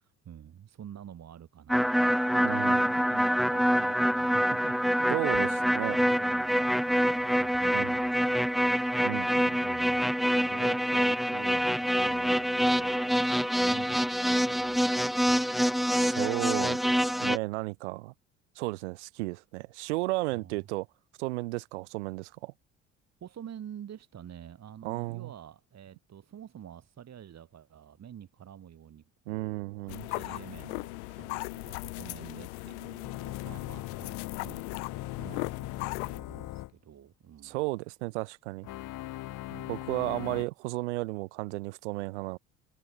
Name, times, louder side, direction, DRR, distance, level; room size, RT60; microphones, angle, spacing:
voice 1, 0.0-8.9 9.6-15.5 20.3-20.7 23.2-37.6 39.5-39.8, right 9 dB, 50° right, 3.8 m, -48 dB
sound 1, 1.7-17.4, equal, ahead, 1.2 m, -26 dB
voice 2, 2.4-2.8 5.1-5.5 5.7-6.0 7.7-8.0 9.0-9.6 15.9-18.1 18.6-20.9 21.2-22.5 24.8-25.3 29.3-30.1 37.4-38.7 39.7-42.4, right 23 dB, 90° right, 0.7 m, -33 dB
sound 2, 29.9-36.2, left 27 dB, 85° left, 0.6 m, -38 dB
sound 3, 33.0-36.7 38.6-40.4, left 16 dB, 70° left, 3.4 m, -40 dB
hypercardioid pair, 65°, 33 cm